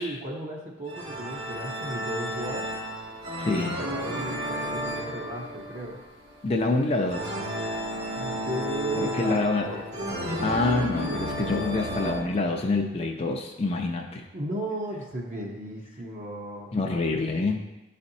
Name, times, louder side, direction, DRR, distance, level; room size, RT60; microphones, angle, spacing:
voice 1, 0.0-2.7 3.6-6.0 8.1-10.4 14.3-16.7, right 1 dB, 40° right, -2 dB, 0.7 m, -35 dB
sound 1, 0.9-12.2, equal, 55° right, 1.2 m, -33 dB
voice 2, 3.4-3.8 6.4-7.3 8.9-9.7 10.4-14.3 16.7-17.6, left 3 dB, 30° left, 1 dB, 0.5 m, -26 dB
11.0 x 4.2 x 2.7 m, 1.0 s
head